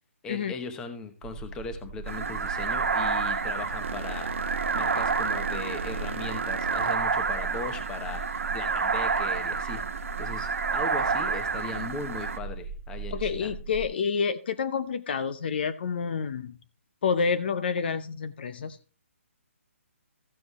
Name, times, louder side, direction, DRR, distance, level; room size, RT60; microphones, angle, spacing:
voice 1, 0.2-9.8 10.2-13.5, left 4 dB, 10° left, 7 dB, 1.0 m, -39 dB
sound 1, 1.2-13.9, right 5 dB, 25° right, 1.7 m, -40 dB
sound 2, 2.1-12.4, right 5 dB, 80° right, 1.3 m, -29 dB
sound 3, 3.8-8.3, right 4 dB, 60° right, 1.2 m, -38 dB
voice 2, 13.1-16.6 17.0-18.8, left 6 dB, 45° left, 11 dB, 0.7 m, -28 dB
14.0 x 7.7 x 3.1 m, 0.35 s
hypercardioid pair, 160°, 7 cm